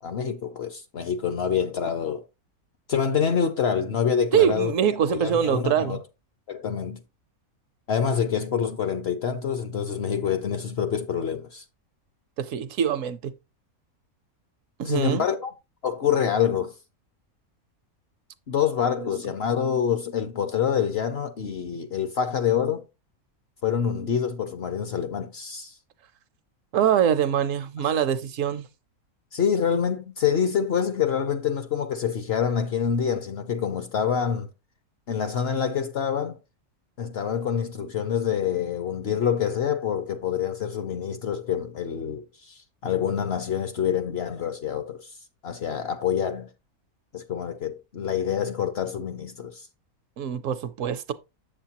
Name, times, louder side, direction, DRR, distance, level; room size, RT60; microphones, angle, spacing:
voice 1, 0.0-2.2 2.9-4.7 5.1-6.0 6.5-7.0 7.9-11.6 14.8-15.5 15.8-16.7 18.5-22.8 23.6-25.7 29.3-34.5 35.1-36.4 37.0-45.1 45.4-46.5 47.1-49.7, left 7 dB, 55° left, 0.8 m, -26 dB
voice 2, 4.3-6.0 12.4-13.3 14.8-15.2 26.7-28.7 50.2-51.1, right 9 dB, 70° right, 0.9 m, -24 dB
7.7 x 7.1 x 2.8 m
omnidirectional pair, 1.5 m